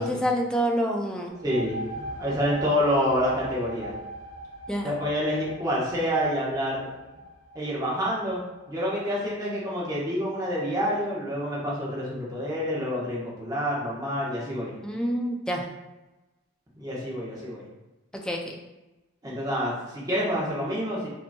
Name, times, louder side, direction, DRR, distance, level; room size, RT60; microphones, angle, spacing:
voice 1, 0.0-1.3 4.7-4.9 14.8-15.7 18.1-18.6, equal, 5° left, 1 dB, 0.4 m, -27 dB
sound 1, 1.3-8.7, right 1 dB, 70° right, 0.8 m, -40 dB
voice 2, 1.4-3.9 4.8-6.9 7.5-8.4 8.7-14.7 16.8-17.6 19.2-21.1, equal, 15° right, -7 dB, 1.1 m, -28 dB
5.2 x 2.9 x 2.2 m, 1.1 s
head